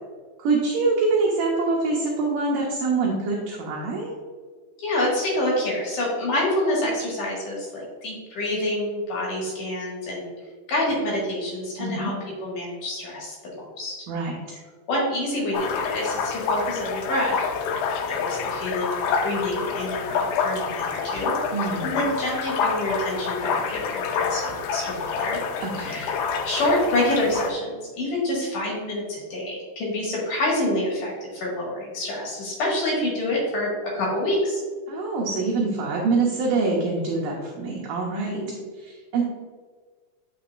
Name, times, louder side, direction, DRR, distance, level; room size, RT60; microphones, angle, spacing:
voice 1, 0.4-4.1 11.8-12.1 14.1-14.3 21.5-22.0 25.6-26.0 34.9-38.4 38.8-39.2, right 3 dB, 70° right, -2 dB, 2.3 m, -25 dB
voice 2, 4.8-10.3 10.7-12.1 12.4-13.9 14.9-17.5 18.1-21.3 21.8-25.4 25.8-34.6 38.3-38.6, left 1 dB, 60° left, -4 dB, 3.2 m, -27 dB
sound 1, 15.5-27.5, left 5 dB, 80° left, 2.5 m, -28 dB
8.5 x 5.9 x 2.5 m, 1.5 s
omnidirectional pair, 4.4 m